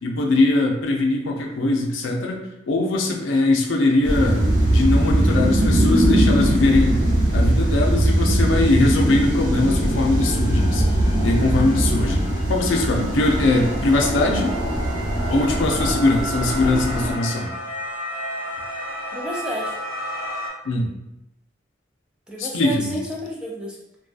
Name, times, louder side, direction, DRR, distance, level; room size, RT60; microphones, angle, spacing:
voice 1, 0.0-2.4 2.7-4.4 4.7-7.0 7.3-10.9 11.2-14.5 15.3-17.5 20.6-20.9 22.4-23.0, left 2 dB, 85° left, 1 dB, 0.5 m, -21 dB
sound 1, 4.0-17.1, right 1 dB, 90° right, 0.8 m, -21 dB
sound 2, 6.0-6.1 6.4-20.5, equal, 55° left, 0.8 m, -35 dB
voice 2, 19.1-19.7 22.3-23.7, equal, 5° right, -4 dB, 0.4 m, -30 dB
2.5 x 2.3 x 2.4 m, 0.88 s
head